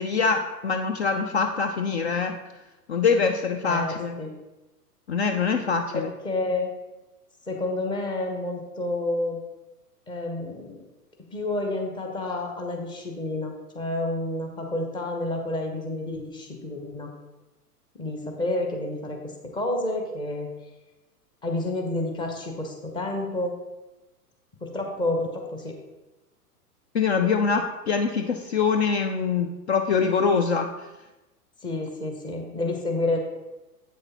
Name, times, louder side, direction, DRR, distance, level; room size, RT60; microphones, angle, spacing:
voice 1, 0.0-2.3 2.9-4.2 5.1-6.1 26.9-30.7, left 5 dB, 45° left, 5 dB, 0.5 m, -24 dB
voice 2, 3.6-4.3 5.9-6.7 7.5-9.4 10.1-10.8 11.3-17.1 18.0-20.5 21.4-23.5 24.6-25.7 31.6-33.2, left 2 dB, 10° left, 2 dB, 0.8 m, -29 dB
8.1 x 6.4 x 2.9 m, 1.1 s
figure-of-eight pair, 105°, 47 cm